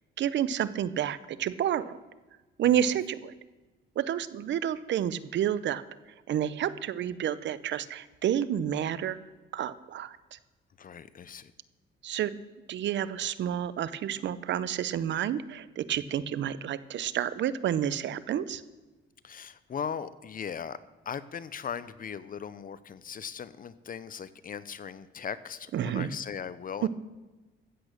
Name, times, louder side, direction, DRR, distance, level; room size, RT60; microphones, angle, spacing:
voice 1, 0.2-2.0 2.6-3.3 4.0-5.8 6.3-9.2 9.5-10.4 12.0-12.3 12.7-18.6 25.7-26.1 26.8-26.9, right 10 dB, 65° right, 16 dB, 0.7 m, -30 dB
voice 2, 10.8-11.5 19.2-20.8 21.1-26.9, left 7 dB, 45° left, 16 dB, 0.8 m, -38 dB
15.0 x 8.5 x 6.6 m, 1.2 s
cardioid pair, 90°, 20 cm